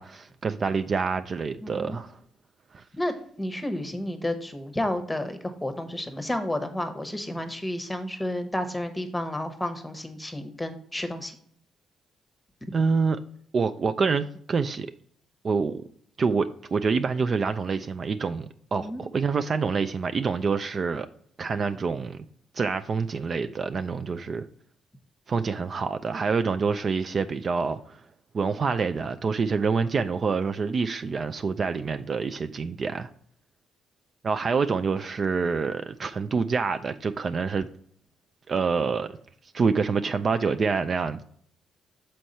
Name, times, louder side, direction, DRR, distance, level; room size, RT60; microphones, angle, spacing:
voice 1, 0.0-2.2 2.7-2.8 12.7-13.2 13.5-14.9 15.4-15.8 16.2-21.1 21.4-22.2 22.5-24.4 25.3-28.0 28.3-33.1 34.2-37.7 38.5-39.1 39.5-41.2, right 5 dB, 45° right, 0.3 m, -26 dB
voice 2, 1.6-2.0 2.9-11.4 12.6-12.7 18.8-19.0, left 1 dB, 10° left, 1.0 m, -31 dB
6.3 x 4.5 x 4.0 m
cardioid pair, 90°, 0 cm